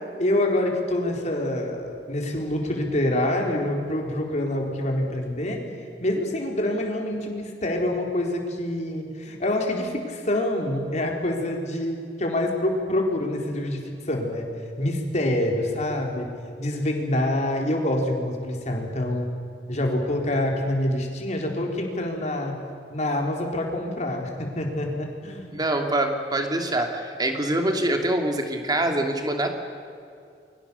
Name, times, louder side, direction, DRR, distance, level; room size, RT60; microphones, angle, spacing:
voice 1, 0.2-5.6 6.0-14.5 14.8-16.3 16.6-19.3 19.7-22.6 22.9-25.6, left 1 dB, 40° left, 1 dB, 4.2 m, -26 dB
voice 2, 25.5-29.5, right 1 dB, 25° right, 4 dB, 2.8 m, -25 dB
29.0 x 23.5 x 7.1 m, 2.4 s
head